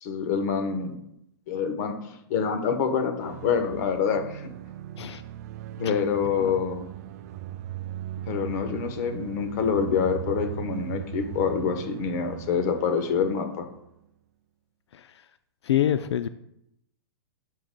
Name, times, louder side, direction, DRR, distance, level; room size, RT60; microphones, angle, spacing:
voice 1, 0.0-1.0 1.5-2.0 2.3-4.5 5.8-6.9 8.3-13.7, left 6 dB, 40° left, 7 dB, 0.9 m, -26 dB
sound 1, 3.2-13.9, right 12 dB, 40° right, 0.3 m, -39 dB
voice 2, 15.6-16.3, left 11 dB, 90° left, 12 dB, 0.4 m, -25 dB
10.5 x 6.5 x 2.2 m, 0.81 s
hypercardioid pair, 155°, 14 cm